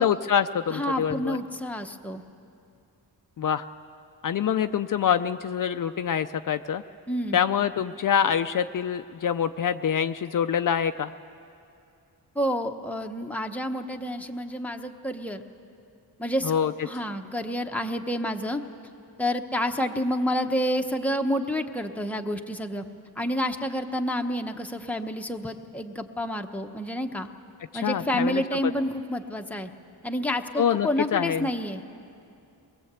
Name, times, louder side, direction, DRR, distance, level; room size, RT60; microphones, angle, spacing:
voice 1, 0.0-1.4 3.4-3.6 4.2-6.8 7.3-11.1 16.4-16.7 27.7-28.4 30.6-31.5, left 8 dB, 55° left, 9 dB, 0.5 m, -25 dB
voice 2, 0.7-2.2 7.1-7.4 12.3-15.4 16.2-16.6 16.8-18.6 19.2-22.8 23.2-27.3 27.7-29.7 30.0-31.8, equal, 5° left, 4 dB, 0.8 m, -29 dB
22.0 x 21.0 x 8.1 m, 2.6 s
wide cardioid pair, 170°, 39 cm